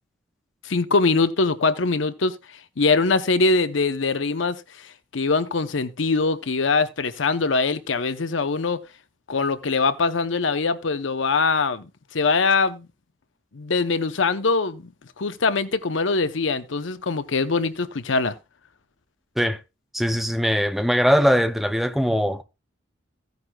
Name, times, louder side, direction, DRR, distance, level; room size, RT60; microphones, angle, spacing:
voice 1, 0.6-2.4 2.8-8.8 9.3-12.9 13.5-18.3, left 4 dB, 80° left, 0.8 m, -23 dB
voice 2, 19.9-22.4, equal, ahead, 0.5 m, -21 dB
15.5 x 9.4 x 2.3 m
head